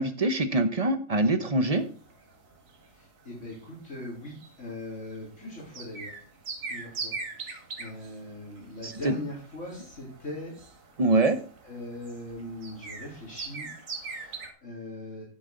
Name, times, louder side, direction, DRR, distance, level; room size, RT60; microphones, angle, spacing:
voice 1, 0.0-1.8 8.8-9.1 11.0-11.4, right 2 dB, 30° right, 9 dB, 0.9 m, -24 dB
sound 1, 1.7-14.5, right 4 dB, 85° right, 2.0 m, -42 dB
voice 2, 2.9-6.1 6.6-10.5 11.6-15.2, left 1 dB, 70° left, -5 dB, 4.1 m, -41 dB
9.9 x 8.4 x 3.9 m, 0.42 s
omnidirectional pair, 1.4 m